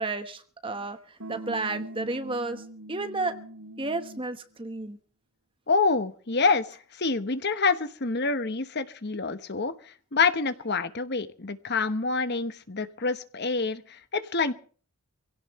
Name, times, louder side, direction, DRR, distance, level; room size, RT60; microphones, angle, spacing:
voice 1, 0.0-3.4 3.8-5.0, right 3 dB, 25° right, 1.2 m, -32 dB
sound 1, 1.2-4.4, right 1 dB, 90° right, 6.3 m, -42 dB
voice 2, 5.7-14.5, left 4 dB, 50° left, 1.1 m, -27 dB
24.0 x 17.0 x 3.2 m
head